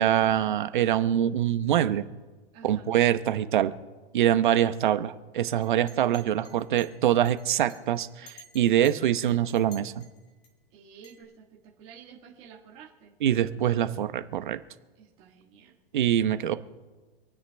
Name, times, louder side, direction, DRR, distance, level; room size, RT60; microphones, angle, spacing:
voice 1, 0.0-2.0 2.6-3.7 4.1-10.0 13.2-14.6 15.9-16.5, right 11 dB, 55° right, 11 dB, 0.9 m, -24 dB
voice 2, 2.5-2.9 10.7-13.1 15.0-15.7, right 7 dB, 20° right, -2 dB, 1.5 m, -51 dB
Chink clink, 5.6-10.5 11.0-11.2, left 2 dB, 15° left, 2.2 m, -53 dB
27.0 x 9.5 x 3.4 m, 1.2 s
hypercardioid pair, 175°, 30 cm